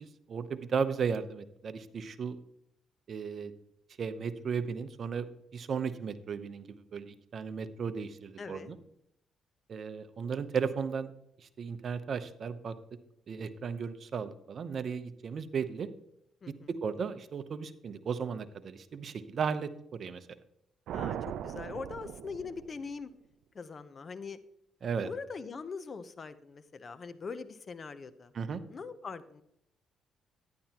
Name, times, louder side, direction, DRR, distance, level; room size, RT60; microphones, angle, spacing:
voice 1, 0.0-2.4 3.1-3.5 4.0-8.8 9.7-11.1 11.4-12.7 13.3-15.9 16.5-20.3 24.8-25.1 28.3-28.6, right 6 dB, 55° right, 12 dB, 0.8 m, -35 dB
voice 2, 8.4-8.7 16.4-16.7 20.9-23.1 23.5-24.4 25.0-28.3 28.7-29.4, left 5 dB, 40° left, 12 dB, 0.7 m, -42 dB
sound 1, 20.9-23.1, right 10 dB, 80° right, 0.4 m, -39 dB
11.0 x 10.5 x 2.9 m, 0.76 s
cardioid pair, 90°, 0 cm